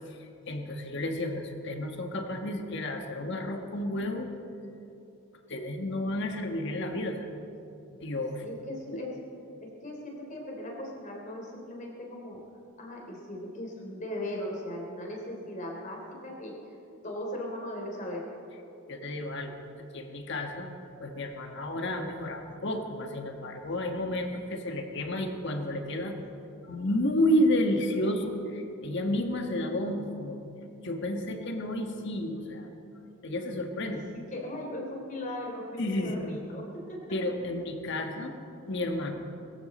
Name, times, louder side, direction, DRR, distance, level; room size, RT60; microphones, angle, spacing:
voice 1, 0.1-4.3 5.5-7.3 8.0-8.4 8.9-9.0 18.9-19.5 19.8-20.7 21.0-26.1 26.6-30.4 30.8-32.7 33.2-34.0 35.8-36.4 37.1-38.3 38.7-39.1, left 1 dB, 60° left, 4 dB, 1.5 m, -31 dB
voice 2, 8.4-9.2 9.6-12.4 12.8-16.8 17.0-18.3 33.8-37.0 37.9-38.2, left 1 dB, 40° left, -1 dB, 3.4 m, -38 dB
22.0 x 14.5 x 4.3 m, 2.7 s
head